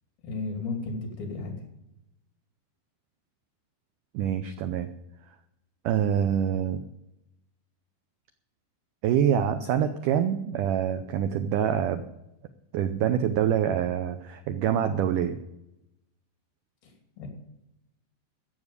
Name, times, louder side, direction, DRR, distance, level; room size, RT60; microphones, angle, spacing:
voice 1, 0.2-1.5 16.8-16.9 17.2-17.3, left 3 dB, 65° left, 2 dB, 4.5 m, -33 dB
voice 2, 4.1-4.9 5.9-6.8 9.0-12.0 12.7-15.4, right 9 dB, 85° right, 9 dB, 1.8 m, -25 dB
14.0 x 7.5 x 8.2 m, 0.87 s
omnidirectional pair, 4.6 m